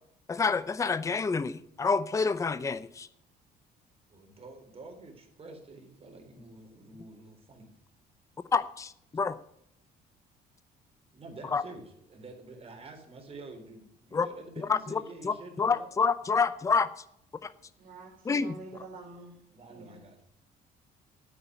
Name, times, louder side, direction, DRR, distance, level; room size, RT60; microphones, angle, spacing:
voice 1, 0.3-3.1 8.5-9.4 11.5-11.6 14.1-14.3 14.6-15.0 15.2-16.9 17.4-17.5 18.3-18.6, left 5 dB, 20° left, 0.6 m, -28 dB
voice 2, 4.1-7.7 11.1-15.9 19.5-20.2, right 3 dB, 35° right, 3.8 m, -48 dB
voice 3, 17.8-20.0, right 3 dB, 50° right, 2.1 m, -47 dB
9.4 x 8.2 x 9.3 m
cardioid pair, 110°, 17 cm